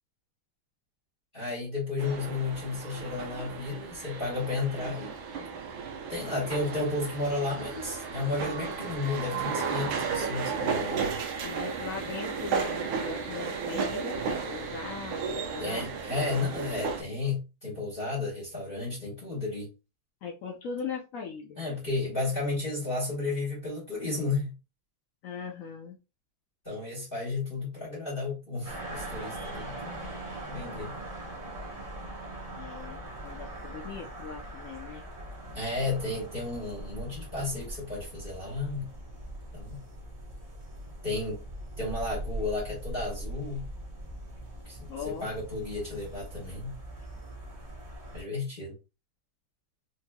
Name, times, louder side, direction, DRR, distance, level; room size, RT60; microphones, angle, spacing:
voice 1, 1.3-5.5 6.1-11.2 15.6-19.7 21.6-24.6 26.6-30.1 30.5-31.0 35.5-38.9 39.5-39.8 41.0-41.4 41.8-43.7 44.6-46.7 48.1-48.7, left 3 dB, 30° left, 1.4 m, -33 dB
sound 1, 2.0-17.0, right 5 dB, 75° right, 1.5 m, -34 dB
voice 2, 11.4-15.9 20.2-21.6 25.2-26.0 32.6-35.0 44.9-45.3, left 6 dB, 85° left, 0.7 m, -39 dB
sound 2, 28.7-48.2, right 1 dB, 45° right, 0.4 m, -41 dB
4.4 x 2.9 x 2.2 m
omnidirectional pair, 2.3 m